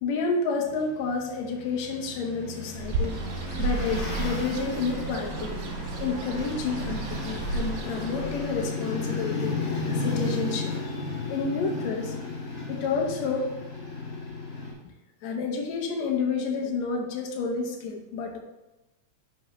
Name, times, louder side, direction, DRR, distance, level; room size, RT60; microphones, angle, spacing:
voice 1, 0.0-3.2 3.6-5.6 6.0-9.6 10.0-12.1 12.7-13.5 15.2-18.4, left 4 dB, 70° left, 2 dB, 2.2 m, -30 dB
sound 1, 0.7-14.7, left 3 dB, 40° left, 3.0 m, -34 dB
Bird, 2.7-8.6, right 3 dB, 75° right, 2.3 m, -33 dB
10.0 x 6.0 x 3.1 m, 0.97 s
omnidirectional pair, 3.4 m